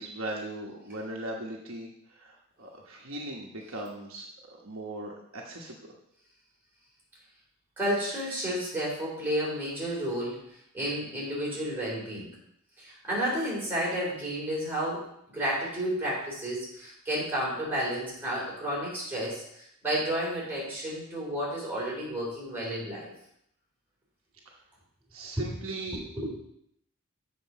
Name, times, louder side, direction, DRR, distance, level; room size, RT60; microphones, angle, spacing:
voice 1, 0.0-5.8 25.1-26.0, right 1 dB, 65° right, -1 dB, 1.2 m, -39 dB
voice 2, 7.8-10.4 10.7-12.3 12.8-23.1 25.9-26.4, equal, 10° right, -6 dB, 3.4 m, -31 dB
7.5 x 4.7 x 6.1 m, 0.73 s
head